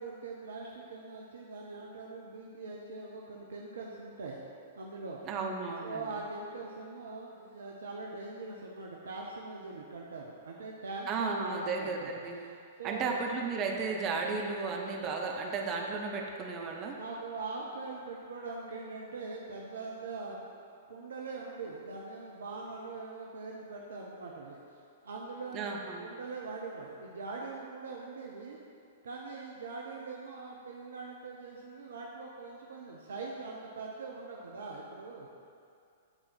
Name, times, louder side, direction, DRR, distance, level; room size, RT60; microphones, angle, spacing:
voice 1, 0.0-4.4 4.7-5.2 5.8-12.1 12.8-13.2 16.9-20.4 20.9-24.6 25.0-28.6 29.0-35.3, right 3 dB, 65° right, -2 dB, 0.8 m, -42 dB
voice 2, 5.3-6.2 11.1-12.4 12.8-17.0 25.5-26.1, right 4 dB, 30° right, 1 dB, 0.9 m, -34 dB
8.9 x 4.2 x 5.8 m, 2.4 s
figure-of-eight pair, 105°, 0 cm